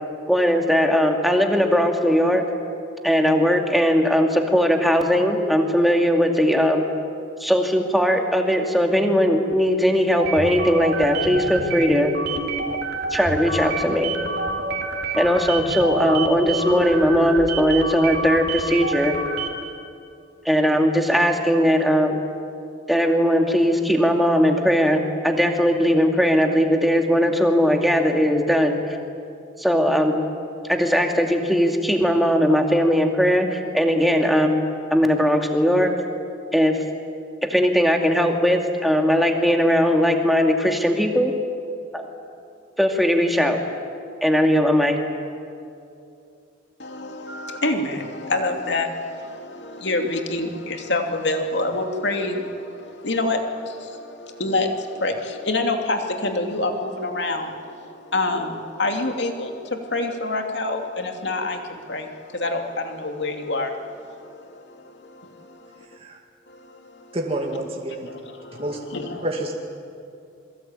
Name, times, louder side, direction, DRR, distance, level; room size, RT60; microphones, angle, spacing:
voice 1, 0.3-2.4 3.0-6.9 7.4-12.1 13.1-14.1 15.2-19.2 20.4-22.3 22.9-28.8 29.6-30.2 30.7-36.0 36.5-36.8 37.5-41.3 41.9-42.1 42.8-43.6 44.2-45.0, equal, ahead, 2 dB, 2.4 m, -19 dB
sound 1, 10.2-19.7, right 3 dB, 55° right, 3.0 m, -28 dB
voice 2, 46.8-65.9 66.5-67.2 68.1-69.3, left 2 dB, 65° left, 4 dB, 2.8 m, -27 dB
voice 3, 67.1-68.1 68.5-68.8 69.2-69.5, right 1 dB, 30° right, 0 dB, 2.3 m, -28 dB
28.0 x 23.0 x 9.0 m, 2.6 s
head